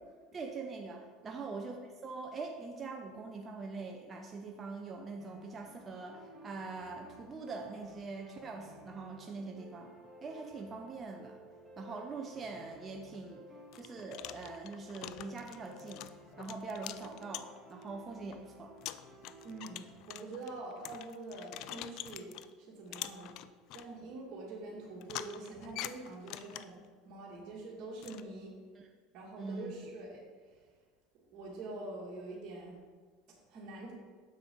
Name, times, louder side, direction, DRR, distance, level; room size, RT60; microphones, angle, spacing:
voice 1, 0.3-9.9 10.2-11.4 11.8-13.5 13.7-16.1 16.4-18.7 28.7-28.9 29.4-29.7, right 4 dB, 30° right, 1 dB, 0.7 m, -43 dB
sound 1, 5.2-20.0, equal, 5° right, 1.6 m, -55 dB
sound 2, 13.0-13.2 13.7-17.8 18.3-18.4 18.8-22.5 22.9-23.9 25.0-26.9 28.0-28.2, left 14 dB, 60° left, 0.3 m, -45 dB
voice 2, 19.4-22.3 22.6-23.3 23.7-28.5 29.1-30.7 31.3-32.8 33.5-33.9, right 2 dB, 50° right, -6 dB, 2.1 m, -45 dB
6.9 x 6.7 x 3.9 m, 1.5 s
supercardioid pair, 95°, 0 cm